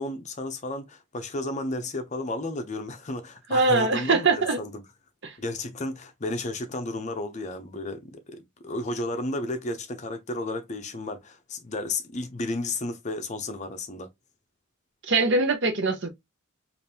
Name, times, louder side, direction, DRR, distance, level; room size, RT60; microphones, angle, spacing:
voice 1, 0.0-4.8 5.4-14.1, left 2 dB, 30° left, 0.6 m, -33 dB
voice 2, 3.5-4.6 5.2-5.3 15.1-16.1, right 3 dB, 50° right, 0.8 m, -22 dB
5.0 x 2.5 x 2.8 m
head